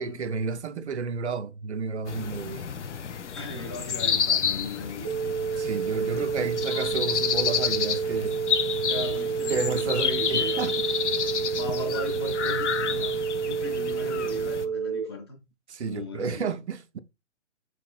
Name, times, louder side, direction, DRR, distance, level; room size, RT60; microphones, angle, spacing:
voice 1, 0.0-2.7 5.6-8.4 9.5-10.9 15.7-17.0, right 5 dB, 65° right, 0.5 m, -31 dB
sound 1, 2.1-14.6, left 7 dB, 70° left, 0.5 m, -30 dB
voice 2, 3.4-5.1 6.1-6.5 8.9-10.8 11.5-13.2 13.4-15.4 15.9-16.5, left 1 dB, 20° left, 0.5 m, -37 dB
sound 2, 5.0-15.0, right 6 dB, 20° right, 0.6 m, -29 dB
4.2 x 3.2 x 2.3 m
figure-of-eight pair, 135°, 37 cm